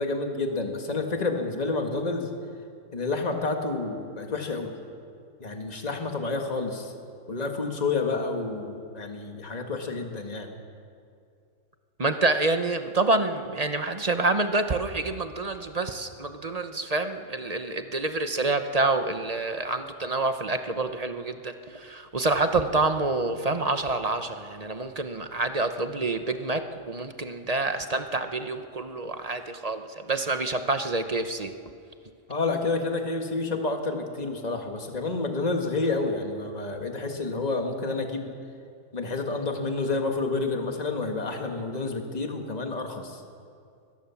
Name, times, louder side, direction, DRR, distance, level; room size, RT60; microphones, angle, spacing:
voice 1, 0.0-2.3 2.9-4.8 5.4-6.9 7.3-10.5 32.3-38.3 38.9-43.2, left 3 dB, 25° left, 3 dB, 1.8 m, -29 dB
voice 2, 12.0-31.5, right 3 dB, 30° right, 8 dB, 0.9 m, -27 dB
21.0 x 20.0 x 7.2 m, 2.4 s
omnidirectional pair, 1.6 m